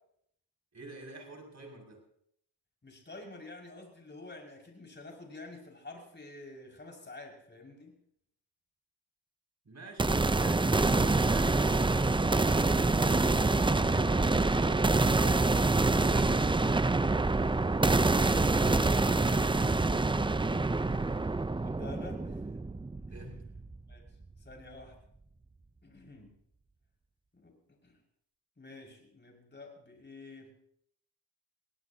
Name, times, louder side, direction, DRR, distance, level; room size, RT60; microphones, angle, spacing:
voice 1, 0.7-2.0 9.6-10.8 16.0-16.7 23.1-23.4, right 1 dB, 40° right, 1 dB, 6.4 m, -49 dB
voice 2, 2.8-7.9 13.0-15.5 18.1-18.5 18.8-19.8 21.6-22.4 23.9-24.0 24.4-25.0 25.8-26.3 27.4-28.0 28.6-30.5, left 2 dB, 25° left, 0 dB, 5.8 m, -48 dB
sound 1, 10.0-23.9, right 3 dB, 10° right, 0.6 m, -26 dB
22.0 x 17.5 x 2.8 m, 0.69 s
cardioid pair, 75°, 44 cm